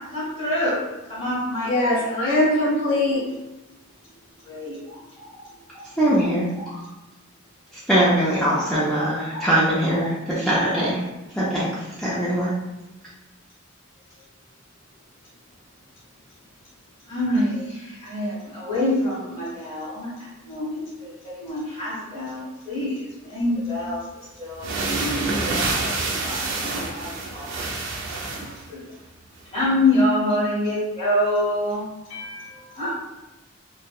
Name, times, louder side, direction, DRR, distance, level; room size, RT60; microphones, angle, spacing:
voice 1, 0.1-0.8 1.1-2.0 4.4-5.4 5.7-5.8 6.6-6.8 9.3-9.4 10.7-10.8 17.1-24.0 24.4-25.6 25.8-25.9 26.2-26.4 26.6-27.4 28.7-28.8 29.5-31.8 32.7-32.9, left 1 dB, 25° left, -10 dB, 1.0 m, -26 dB
voice 2, 1.6-3.2 32.1-32.8, left 1 dB, 70° left, -6 dB, 0.6 m, -23 dB
voice 3, 6.0-6.5 7.9-11.0 11.3-12.5, right 1 dB, ahead, -10 dB, 0.3 m, -21 dB
sound 1, 23.9-24.0 24.5-28.6, right 3 dB, 65° right, 0.4 m, -27 dB
2.6 x 2.0 x 2.3 m, 1.0 s
head